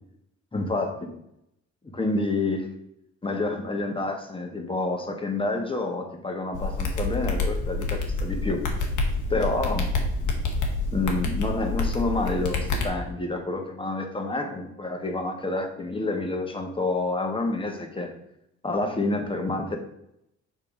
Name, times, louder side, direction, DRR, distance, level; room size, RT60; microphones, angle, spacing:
voice 1, 0.5-1.1 1.9-2.7 3.2-8.7 9.3-10.0 10.9-18.1 18.6-19.8, left 2 dB, 15° left, 4 dB, 1.6 m, -28 dB
sound 1, 6.5-12.9, left 3 dB, 85° left, 1.6 m, -27 dB
7.0 x 4.4 x 5.3 m, 0.79 s
cardioid pair, 90°, 30 cm